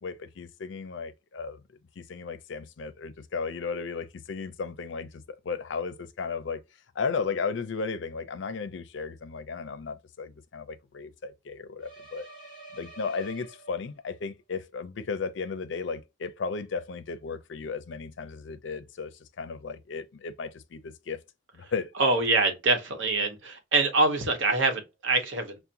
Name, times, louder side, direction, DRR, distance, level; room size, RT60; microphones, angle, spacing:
voice 1, 0.0-1.6 2.0-5.1 5.4-6.6 7.0-12.3 12.7-21.2 21.5-21.9, left 5 dB, 70° left, 0.5 m, -35 dB
sound 1, 11.8-14.2, right 2 dB, 20° right, 1.3 m, -48 dB
voice 2, 22.0-25.6, right 3 dB, 75° right, 1.0 m, -25 dB
5.6 x 2.1 x 2.6 m
head